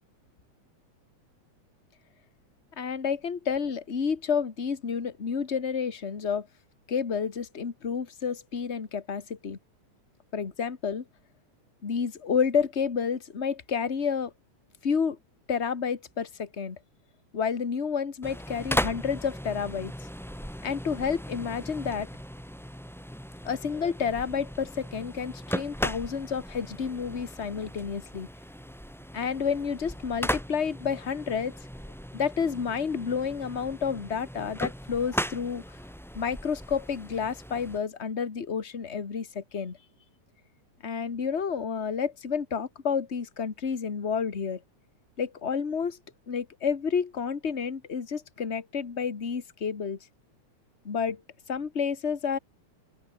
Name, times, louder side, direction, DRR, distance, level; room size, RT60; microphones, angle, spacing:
voice 1, 2.8-6.5 6.9-9.6 10.3-11.0 11.8-14.3 14.8-15.2 15.5-16.8 17.3-19.9 20.6-22.1 23.4-28.3 29.1-31.6 32.1-35.6 36.1-39.8 40.8-44.6 45.2-46.0 46.3-50.0 50.8-51.2 51.5-52.4, left 6 dB, 25° left, 1.7 m, -30 dB
sound 1, 18.2-37.8, equal, ahead, 4.0 m, -37 dB
open air
omnidirectional pair, 3.3 m